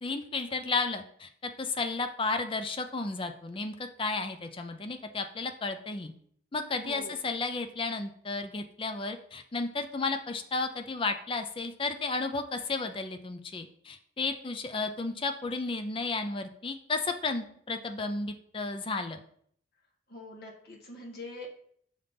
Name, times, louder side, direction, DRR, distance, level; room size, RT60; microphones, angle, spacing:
voice 1, 0.0-6.1 6.5-19.2, left 3 dB, 30° left, 6 dB, 0.6 m, -33 dB
voice 2, 6.8-7.2 20.1-21.5, left 1 dB, 60° left, 0 dB, 1.6 m, -43 dB
6.4 x 3.5 x 5.7 m, 0.63 s
head